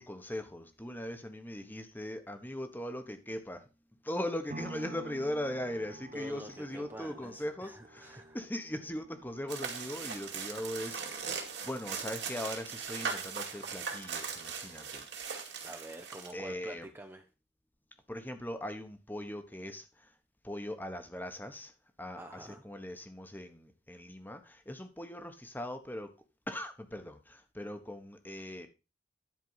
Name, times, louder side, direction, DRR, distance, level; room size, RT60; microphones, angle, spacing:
voice 1, 0.0-3.7 4.0-15.1 16.3-16.9 18.1-20.1 20.4-21.7 22.0-26.1 26.5-28.7, left 1 dB, 10° left, 7 dB, 1.3 m, -40 dB
sound 1, 4.5-12.6 13.1-13.2, right 2 dB, 40° right, 0.7 m, -51 dB
voice 2, 6.1-8.4 15.6-17.2 22.2-22.6, right 1 dB, 15° right, 4 dB, 0.8 m, -47 dB
sound 2, 9.5-16.3, right 6 dB, 70° right, 2.4 m, -39 dB
10.5 x 4.7 x 5.7 m, 0.30 s
head